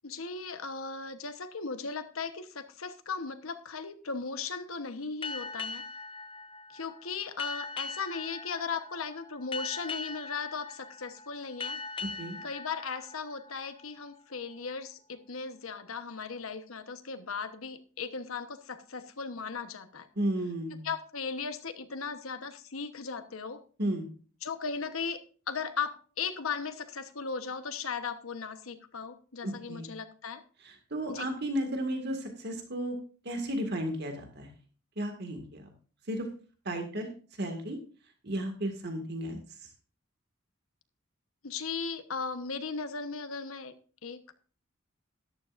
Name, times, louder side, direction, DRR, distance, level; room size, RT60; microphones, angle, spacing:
voice 1, 0.0-5.8 6.7-11.8 12.4-20.1 20.8-23.6 24.4-25.2 25.5-30.4 31.1-31.3 41.4-43.7 44.0-44.3, left 5 dB, 90° left, 9 dB, 1.2 m, -37 dB
sound 1, 5.2-14.4, left 4 dB, 25° left, 0.8 m, -41 dB
voice 2, 20.2-20.9 23.8-24.1 29.4-29.9 30.6-33.0 33.3-34.5 35.0-35.7 36.1-36.3 36.7-37.1 37.4-37.8 38.2-39.4, right 1 dB, 55° right, 4 dB, 2.0 m, -33 dB
13.5 x 12.0 x 2.6 m, 0.39 s
head